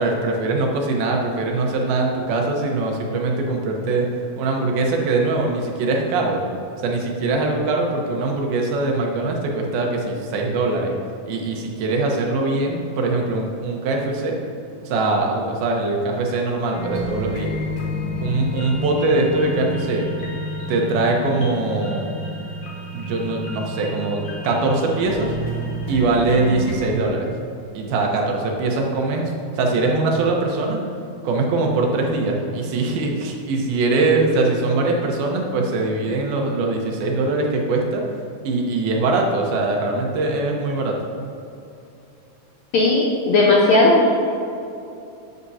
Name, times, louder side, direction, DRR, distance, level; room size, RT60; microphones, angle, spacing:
voice 1, 0.0-4.1 4.4-6.4 6.8-10.9 11.3-14.4 14.8-17.5 18.2-20.1 20.7-22.1 22.9-25.3 25.9-27.3 27.7-30.8 31.2-38.0 38.4-41.0, right 3 dB, 75° right, 0 dB, 3.0 m, -22 dB
sound 1, 16.7-26.9, equal, 55° left, 2.4 m, -30 dB
voice 2, 42.7-44.2, left 2 dB, 70° left, -3 dB, 1.7 m, -16 dB
12.5 x 9.4 x 2.8 m, 2.7 s
omnidirectional pair, 4.4 m